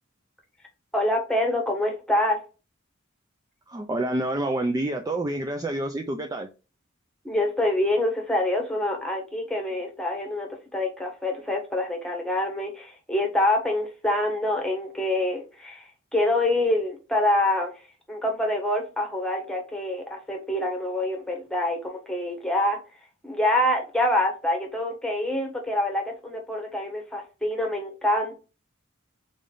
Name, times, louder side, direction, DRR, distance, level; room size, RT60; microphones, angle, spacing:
voice 1, 0.9-2.4 7.2-17.7 18.1-22.8 23.2-28.3, left 1 dB, 5° left, 1.2 m, -26 dB
voice 2, 3.7-6.5, right 1 dB, 20° right, 0.3 m, -28 dB
3.8 x 3.4 x 3.8 m
head